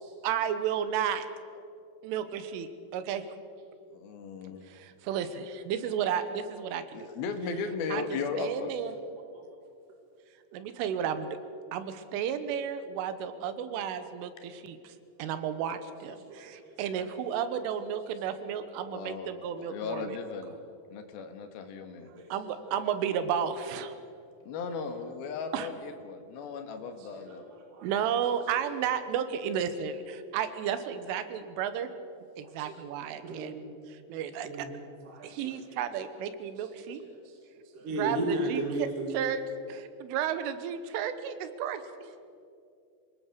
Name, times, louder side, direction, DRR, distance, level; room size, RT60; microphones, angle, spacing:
voice 1, 0.2-1.3 2.0-3.2 4.7-6.8 7.9-8.9 10.5-11.4 11.7-20.2 22.3-24.0 25.5-25.7 27.8-31.9 32.4-33.5 33.9-34.7 35.2-37.0 38.0-41.8, right 8 dB, 85° right, 11 dB, 3.7 m, -33 dB
voice 2, 3.9-4.6 6.9-8.7 18.8-20.6 20.9-22.1 24.2-27.4, left 5 dB, 60° left, 6 dB, 3.0 m, -36 dB
voice 3, 16.3-16.6 18.4-18.5 22.2-22.6 27.0-27.9 32.6-32.7 33.2-33.7 34.4-34.8 35.0-35.6 36.6-36.7 37.0-37.3 37.7-39.3, right 2 dB, 50° right, 1 dB, 3.1 m, -35 dB
26.0 x 18.5 x 6.7 m, 2.5 s
omnidirectional pair, 5.6 m